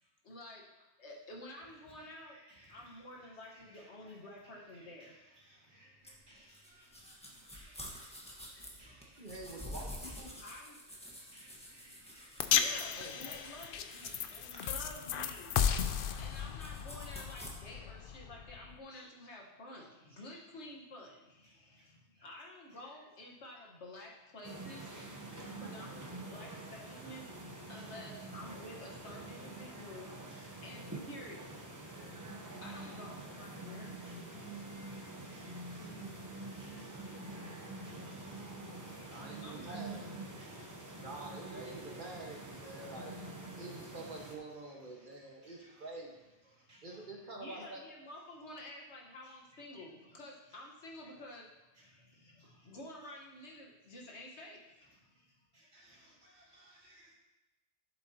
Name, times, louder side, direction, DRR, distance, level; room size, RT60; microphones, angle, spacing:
voice 1, 0.2-0.6 1.0-2.4 2.7-5.1 10.4-10.8 12.4-34.0 39.4-40.0 46.6-46.8 47.3-51.5 51.7-55.3, left 1 dB, 85° left, -1 dB, 1.7 m, -51 dB
voice 2, 5.5-9.2 11.1-12.5 14.2-14.3 25.3-25.5 30.3-30.4 32.4-32.5 34.0-38.5 38.8-39.2 40.4-41.0 45.4-45.5 46.7-46.8 52.4-52.5 55.5-57.1, right 1 dB, 75° right, -5 dB, 2.8 m, -63 dB
sound 1, 6.0-17.5, equal, 5° left, 1.4 m, -49 dB
voice 3, 9.2-10.3 13.0-13.4 39.1-40.1 41.0-43.2 43.6-46.1 46.8-47.8, right 2 dB, 45° right, -1 dB, 1.6 m, -47 dB
sound 2, 12.4-18.8, left 8 dB, 60° left, 0.7 m, -35 dB
sound 3, 24.4-44.4, right 2 dB, 20° right, 0.9 m, -46 dB
11.0 x 8.0 x 2.9 m, 1.0 s
omnidirectional pair, 1.1 m